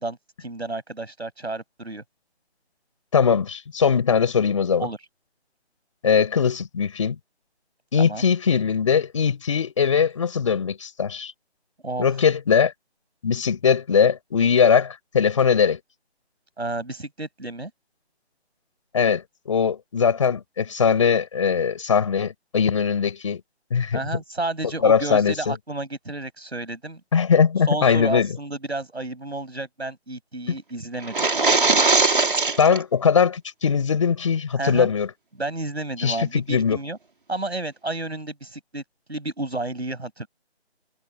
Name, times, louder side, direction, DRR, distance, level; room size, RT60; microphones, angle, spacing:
voice 1, 0.0-2.0 4.8-5.0 8.0-8.3 11.8-12.2 16.6-17.7 23.9-27.0 27.7-31.2 34.6-34.9 35.4-37.0 37.3-38.8 39.1-40.3, right 2 dB, 70° right, 6.7 m, -31 dB
voice 2, 3.1-4.9 6.0-7.2 7.9-11.3 12.0-12.7 13.2-15.8 18.9-23.4 23.7-24.0 24.8-25.6 27.1-28.3 30.5-30.6 32.6-35.1 36.0-36.8, left 6 dB, 30° left, 5.6 m, -20 dB
sound 1, 31.0-32.8, right 3 dB, 50° right, 4.4 m, -20 dB
figure-of-eight pair, 160°, 33 cm